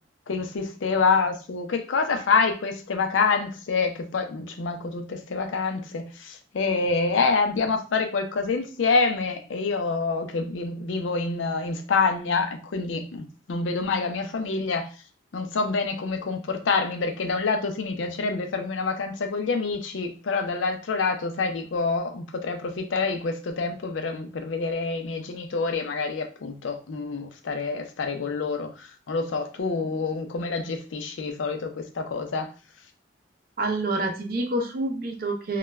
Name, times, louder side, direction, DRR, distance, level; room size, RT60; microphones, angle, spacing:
voice 1, 0.3-14.9 15.3-28.7 29.1-32.5, left 4 dB, 80° left, 5 dB, 0.5 m, -27 dB
voice 2, 33.6-35.6, right 2 dB, 50° right, 4 dB, 0.4 m, -27 dB
2.3 x 2.1 x 3.1 m, 0.36 s
head